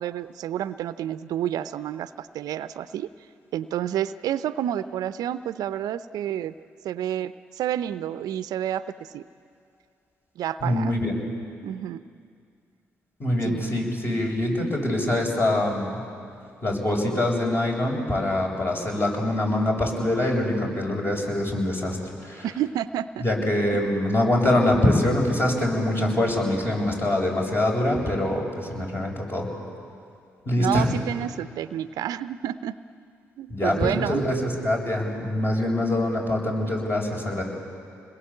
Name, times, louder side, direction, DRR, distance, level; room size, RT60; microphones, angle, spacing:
voice 1, 0.0-3.1 3.5-6.5 6.8-8.8 9.1-9.2 10.4-11.0 11.6-12.0 13.4-13.6 22.4-23.2 23.7-23.8 30.6-32.7 33.4-34.2, right 11 dB, 70° right, 14 dB, 0.6 m, -29 dB
voice 2, 10.6-11.1 13.2-16.0 16.6-22.0 22.2-22.5 23.2-29.5 30.4-30.9 33.5-37.4, left 1 dB, 35° left, 0 dB, 7.4 m, -24 dB
27.5 x 21.0 x 8.8 m, 2.4 s
hypercardioid pair, 45°, 7 cm